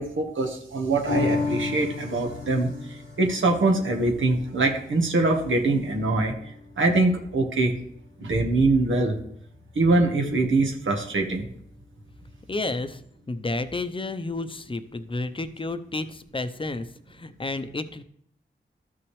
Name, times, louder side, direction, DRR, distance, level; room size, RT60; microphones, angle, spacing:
voice 1, 0.0-6.3 6.8-7.7 8.2-9.1 9.7-11.5, right 2 dB, 80° right, 1 dB, 1.3 m, -23 dB
sound 1, 1.1-7.7 8.2-8.3, left 4 dB, 85° left, 1.2 m, -33 dB
voice 2, 12.5-13.0 13.3-16.8 17.1-18.0, left 2 dB, 25° left, 10 dB, 0.7 m, -31 dB
12.5 x 6.0 x 3.2 m, 0.69 s
cardioid pair, 60°, 20 cm